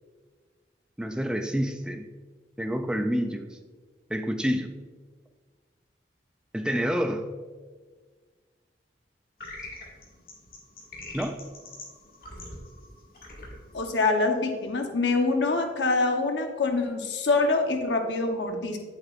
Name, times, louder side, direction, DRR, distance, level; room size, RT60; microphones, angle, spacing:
voice 1, 1.0-2.1 2.6-3.6 4.1-4.8 6.5-7.3 11.1-11.5, equal, 5° right, 6 dB, 0.3 m, -28 dB
sound 1, 9.4-14.7, left 2 dB, 55° left, 2.0 m, -44 dB
voice 2, 13.7-18.8, left 3 dB, 85° left, 4 dB, 1.0 m, -25 dB
8.9 x 7.7 x 2.5 m, 1.5 s
head